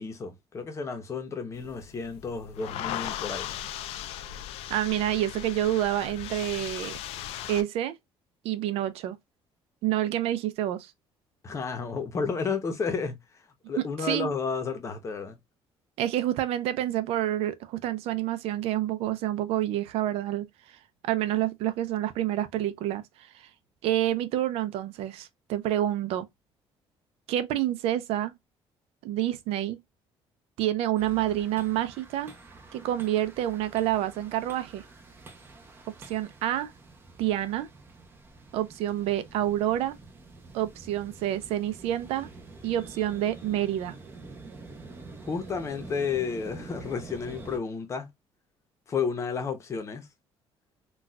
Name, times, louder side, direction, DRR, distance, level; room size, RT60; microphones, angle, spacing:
voice 1, 0.0-3.5 11.4-13.2 13.7-15.4 45.2-48.1 48.9-50.1, left 5 dB, 30° left, 0.7 m, -32 dB
sound 1, 1.5-7.6, left 12 dB, 85° left, 0.4 m, -38 dB
voice 2, 4.7-7.0 7.5-7.9 8.4-9.2 9.8-10.9 14.0-14.3 16.0-20.5 21.0-23.0 23.3-23.5 23.8-26.3 27.3-28.3 29.0-29.8 30.6-32.3 32.7-34.8 36.1-36.7 37.2-37.7 38.5-40.0 40.5-42.3 42.6-43.9, right 13 dB, 90° right, 0.5 m, -28 dB
sound 2, 31.0-47.6, right 3 dB, 20° right, 0.6 m, -47 dB
4.0 x 2.3 x 2.3 m
cardioid pair, 155°, 10 cm